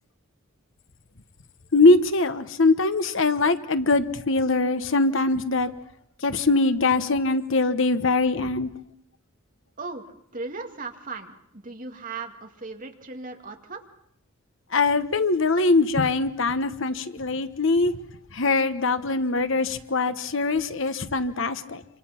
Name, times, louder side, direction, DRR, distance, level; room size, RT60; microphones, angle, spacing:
voice 1, 1.7-5.7 6.2-8.7 14.7-17.9 18.3-21.8, left 3 dB, 60° left, 11 dB, 1.2 m, -22 dB
voice 2, 9.8-13.8, right 3 dB, 40° right, 4 dB, 2.2 m, -37 dB
26.5 x 26.0 x 5.9 m, 0.72 s
head